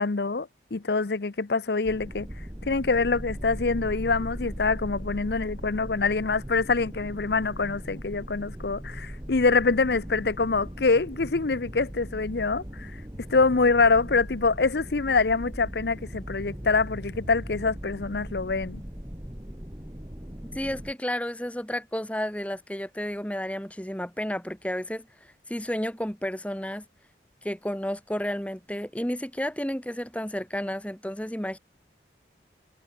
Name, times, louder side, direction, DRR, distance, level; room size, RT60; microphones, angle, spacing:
voice 1, 0.0-2.3 2.7-12.9 13.3-18.8, left 4 dB, 65° left, 0.7 m, -25 dB
sound 1, 1.8-20.9, equal, 20° right, 2.0 m, -39 dB
voice 2, 20.4-26.8 27.4-31.6, equal, 5° left, 1.5 m, -32 dB
head